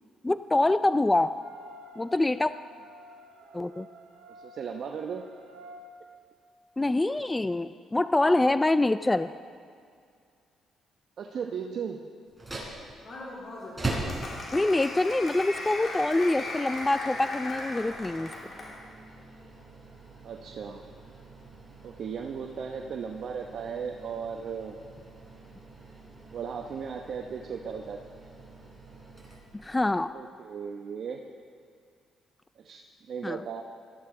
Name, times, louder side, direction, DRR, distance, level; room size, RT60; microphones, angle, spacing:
voice 1, 0.2-1.3 2.0-2.5 3.5-3.9 6.8-9.3 14.5-18.3 29.5-30.1 33.2-33.4, left 2 dB, 15° left, 12 dB, 0.3 m, -25 dB
sound 1, 1.3-5.8, right 1 dB, 90° right, 1.5 m, -51 dB
voice 2, 4.4-5.2 11.2-12.0 20.2-20.8 21.8-24.8 26.3-28.0 30.1-31.2 32.6-33.6, right 6 dB, 60° right, 2 dB, 0.9 m, -36 dB
sound 2, 12.3-30.1, right 2 dB, 10° right, 4.0 m, -43 dB
Applause, 13.0-18.8, left 2 dB, 45° left, 3.4 m, -38 dB
19.5 x 13.5 x 3.8 m, 2.3 s
cardioid pair, 95°, 0 cm